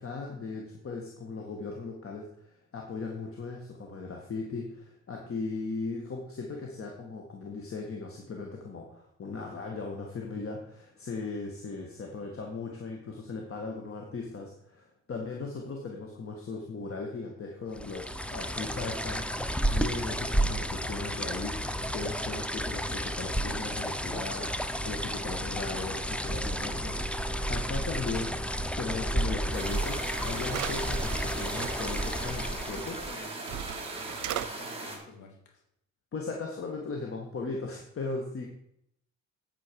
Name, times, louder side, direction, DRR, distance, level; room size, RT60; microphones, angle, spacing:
voice 1, 0.0-28.4 28.8-33.0 36.1-38.5, left 4 dB, 45° left, 1 dB, 1.8 m, -38 dB
sound 1, 17.8-33.2, equal, 5° left, 0.7 m, -32 dB
sound 2, 29.5-35.0, right 2 dB, 20° right, 2.9 m, -39 dB
sound 3, 29.9-30.0 30.4-31.7 33.1-33.2 33.5-34.5, right 13 dB, 75° right, 0.6 m, -37 dB
voice 2, 32.8-35.6, left 3 dB, 80° left, 2 dB, 2.8 m, -51 dB
8.7 x 8.6 x 4.8 m, 0.73 s
cardioid pair, 90°, 30 cm